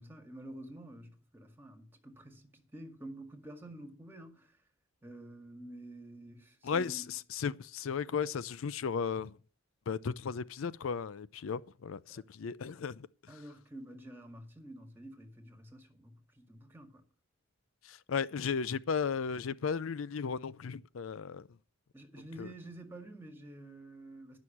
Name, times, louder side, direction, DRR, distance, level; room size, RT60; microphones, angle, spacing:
voice 1, 0.0-4.6 5.0-7.1 12.1-12.2 13.3-17.0 21.9-24.4, right 1 dB, 10° right, 2.0 m, -49 dB
voice 2, 6.6-9.4 9.9-13.1 17.8-21.5 22.4-22.5, left 6 dB, 75° left, 0.5 m, -35 dB
11.0 x 6.3 x 8.5 m
head